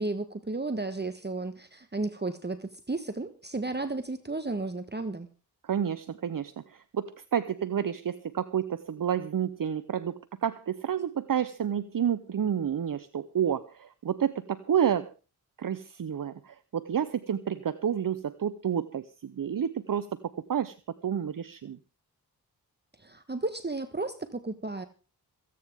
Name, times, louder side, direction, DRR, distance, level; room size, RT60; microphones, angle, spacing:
voice 1, 0.0-5.3 23.0-24.8, right 2 dB, 25° right, 9 dB, 1.4 m, -33 dB
voice 2, 5.6-15.1 15.6-20.1 20.3-20.7 21.0-21.8, right 8 dB, 55° right, 14 dB, 0.8 m, -30 dB
27.0 x 9.3 x 3.6 m, 0.33 s
cardioid pair, 45°, 39 cm